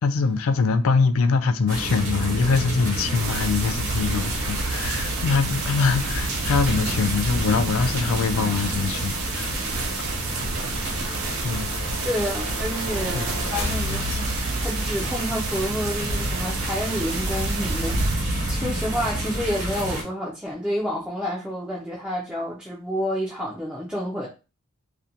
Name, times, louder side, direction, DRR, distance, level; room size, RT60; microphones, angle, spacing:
voice 1, 0.0-9.6 10.0-10.1 11.4-11.7 13.1-13.3 18.6-18.7, left 4 dB, 75° left, 0.4 m, -23 dB
sound 1, 1.7-20.0, right 1 dB, 65° right, 0.9 m, -29 dB
sound 2, 3.1-18.1, right 4 dB, 85° right, 0.5 m, -32 dB
sound 3, 8.7-15.4, left 1 dB, 55° left, 0.9 m, -36 dB
voice 2, 12.0-13.2 13.5-24.3, equal, 5° right, 0.3 m, -29 dB
2.5 x 2.1 x 2.7 m
head